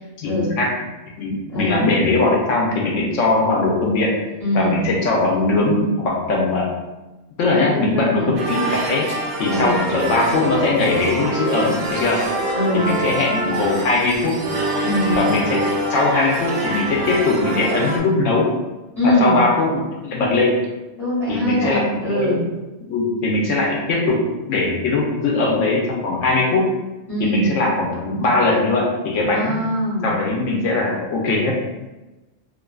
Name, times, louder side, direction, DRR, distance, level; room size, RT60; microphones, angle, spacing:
voice 1, 0.2-0.7 1.2-4.2 4.5-6.7 7.4-9.1 9.4-12.2 12.7-14.4 15.1-15.6 15.9-18.5 19.0-20.5 21.3-22.4 22.9-26.7 27.2-29.6 30.0-31.6, left 2 dB, 85° left, -2 dB, 1.0 m, -20 dB
voice 2, 1.5-1.9 4.4-4.8 7.5-8.3 9.5-9.8 12.5-12.9 14.8-15.2 19.0-19.4 21.0-22.4 27.1-27.5 29.3-30.1, equal, 35° left, -12 dB, 1.0 m, -22 dB
sound 1, 8.4-18.0, right 1 dB, 85° right, 0.9 m, -25 dB
2.5 x 2.4 x 2.2 m, 1.1 s
omnidirectional pair, 1.3 m